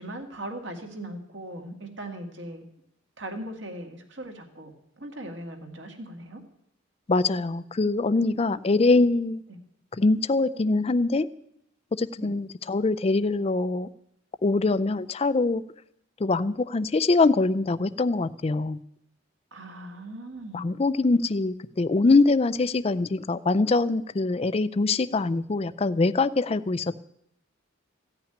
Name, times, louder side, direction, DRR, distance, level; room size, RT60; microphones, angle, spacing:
voice 1, 0.0-2.6 3.2-6.4 8.8-9.0 9.5-9.6 12.2-12.3 19.5-20.7, right 1 dB, 60° right, 3 dB, 2.0 m, -39 dB
voice 2, 7.1-9.4 10.0-11.3 11.9-13.9 14.4-15.6 16.2-18.8 20.5-27.0, left 3 dB, 30° left, 15 dB, 0.4 m, -23 dB
15.0 x 5.9 x 10.0 m, 0.77 s
head